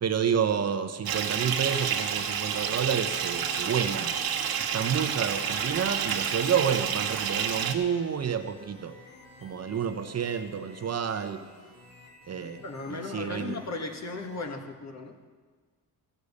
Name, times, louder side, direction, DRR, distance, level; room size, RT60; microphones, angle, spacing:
voice 1, 0.0-4.2 4.7-9.0 9.4-11.4 12.3-12.6 12.9-13.6, right 7 dB, 45° right, 7 dB, 0.8 m, -29 dB
Bathtub (filling or washing) / Fill (with liquid), 1.1-7.8, right 7 dB, 75° right, 1.4 m, -29 dB
sound 1, 3.7-14.4, left 2 dB, 60° left, 3.7 m, -53 dB
voice 2, 12.6-15.2, left 3 dB, 45° left, 3 dB, 1.8 m, -36 dB
14.0 x 6.5 x 8.4 m, 1.5 s
cardioid pair, 90°, 37 cm